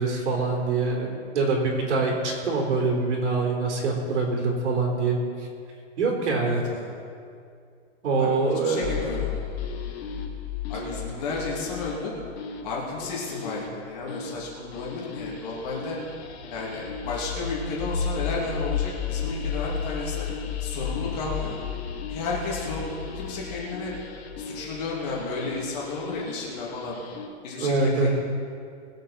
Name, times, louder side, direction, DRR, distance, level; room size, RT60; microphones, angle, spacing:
voice 1, 0.0-5.5 6.0-6.6 8.0-9.1 27.6-28.1, right 3 dB, 75° right, -1 dB, 4.0 m, -24 dB
voice 2, 6.5-6.9 8.2-8.4 8.6-9.4 10.7-12.1 12.6-16.0 16.5-20.3 20.6-21.6 22.1-23.9 24.4-27.0 27.4-28.1, left 3 dB, 35° left, -4 dB, 3.2 m, -33 dB
sound 1, 8.8-27.3, left 6 dB, 60° left, 1.8 m, -34 dB
21.5 x 8.1 x 4.5 m, 2.3 s
hypercardioid pair, 170°, 36 cm